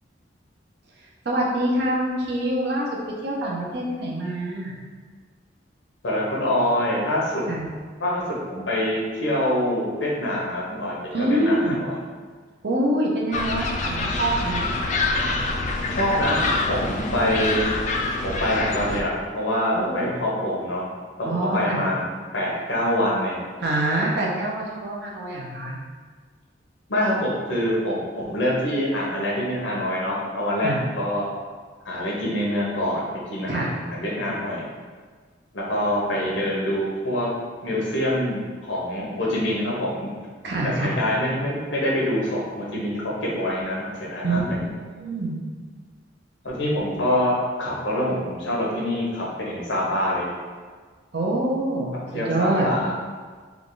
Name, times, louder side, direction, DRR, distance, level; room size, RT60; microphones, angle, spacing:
voice 1, 1.2-4.8 7.5-7.7 11.1-11.8 12.6-14.8 19.7-20.2 21.2-21.9 23.6-25.8 30.6-30.8 33.5-33.7 40.4-40.9 44.2-44.4 44.9-45.3 51.1-52.7, right 1 dB, 65° right, -3 dB, 0.7 m, -25 dB
voice 2, 6.0-7.4 8.0-8.2 8.5-12.0 15.9-17.7 18.2-20.8 21.2-22.0 22.3-23.4 26.9-31.3 31.8-34.7 35.5-37.3 37.6-40.1 40.6-44.6 46.4-50.3 52.1-52.9, left 1 dB, 85° left, -4 dB, 1.0 m, -25 dB
sound 1, 13.3-19.0, left 3 dB, 40° left, 0.3 m, -26 dB
3.5 x 2.4 x 3.8 m, 1.5 s
head